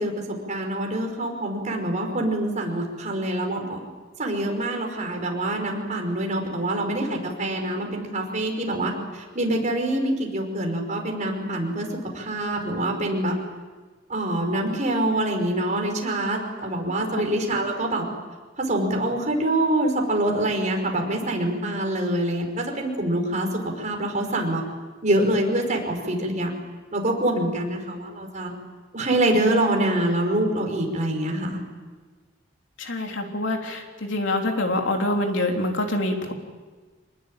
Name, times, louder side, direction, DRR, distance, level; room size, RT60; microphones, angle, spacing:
voice 1, 0.0-3.8 4.2-11.9 12.1-13.3 14.1-18.1 18.6-24.6 25.0-26.5 26.9-28.5 28.9-31.6, right 1 dB, 40° right, 2 dB, 5.5 m, -25 dB
voice 2, 32.8-36.3, left 1 dB, 70° left, 2 dB, 3.4 m, -25 dB
26.5 x 20.0 x 9.0 m, 1.4 s
head